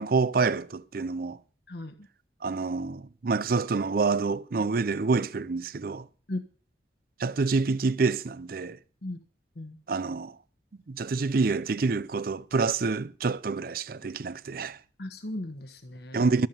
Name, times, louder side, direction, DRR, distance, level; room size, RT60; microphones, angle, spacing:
voice 1, 0.0-1.4 2.4-6.1 7.2-8.8 9.9-10.3 10.9-14.8 16.1-16.5, right 4 dB, 50° right, 0.5 m, -27 dB
voice 2, 15.0-16.3, left 1 dB, 60° left, 1.3 m, -36 dB
14.0 x 7.5 x 6.9 m
head